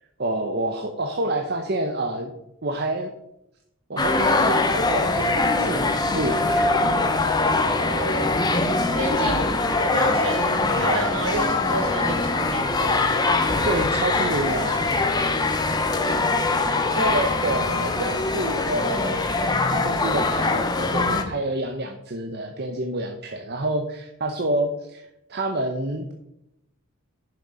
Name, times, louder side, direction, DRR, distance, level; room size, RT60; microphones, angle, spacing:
voice 1, 0.2-2.3 2.6-3.1 3.9-6.7 13.6-14.8 16.9-25.0 25.3-26.1, right 1 dB, 50° right, 4 dB, 0.9 m, -28 dB
sound 1, 4.0-21.2, left 3 dB, 20° left, 0.9 m, -22 dB
voice 2, 7.7-8.4 9.0-9.6 9.9-13.0, right 2 dB, 70° right, -1 dB, 3.7 m, -29 dB
10.5 x 6.7 x 4.9 m, 0.84 s
head